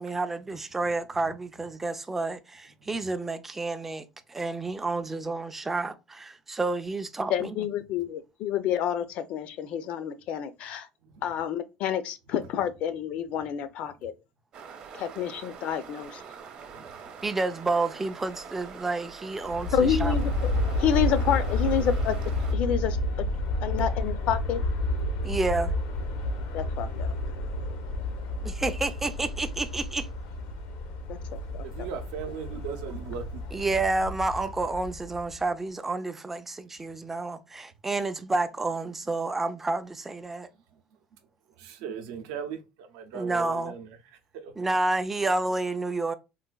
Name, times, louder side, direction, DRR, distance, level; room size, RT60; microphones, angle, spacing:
voice 1, 0.0-7.6 17.2-20.1 25.2-25.7 28.4-30.1 33.5-40.5 43.1-43.7 44.6-46.1, right 3 dB, 10° right, 0.3 m, -30 dB
voice 2, 7.3-10.9 11.2-14.1 14.9-16.2 19.7-22.2 22.5-23.0 23.6-24.6 26.5-27.1 31.1-31.2 31.5-31.6, left 9 dB, 55° left, 0.4 m, -28 dB
sound 1, 14.5-22.5, right 6 dB, 45° right, 0.7 m, -44 dB
Aircraft, 19.3-35.4, left 1 dB, 85° left, 0.7 m, -30 dB
voice 3, 31.2-33.6 41.6-43.9 44.3-44.5, right 6 dB, 85° right, 0.6 m, -38 dB
3.9 x 2.5 x 2.2 m
cardioid pair, 150°, 2 cm